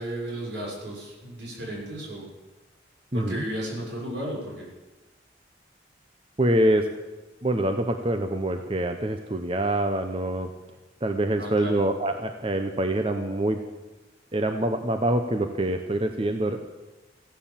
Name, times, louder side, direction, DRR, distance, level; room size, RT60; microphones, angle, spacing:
voice 1, 0.0-2.3 3.1-4.7 11.4-11.8, right 1 dB, 80° right, -2 dB, 6.3 m, -34 dB
voice 2, 3.1-3.4 6.4-6.9 7.4-10.5 11.0-13.6 14.3-16.6, right 1 dB, 30° right, 6 dB, 0.8 m, -25 dB
15.5 x 11.5 x 7.4 m, 1.1 s
head